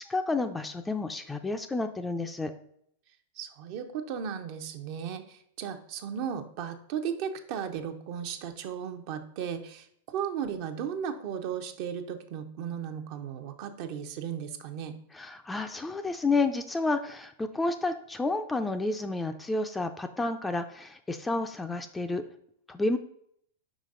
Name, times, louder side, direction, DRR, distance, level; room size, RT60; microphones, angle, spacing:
voice 1, 0.1-2.5 15.1-22.2 22.7-23.0, left 3 dB, 10° left, 7 dB, 0.5 m, -30 dB
voice 2, 3.4-14.9, right 8 dB, 50° right, 6 dB, 0.7 m, -35 dB
5.2 x 5.1 x 3.8 m, 0.68 s
hypercardioid pair, 100°, 0 cm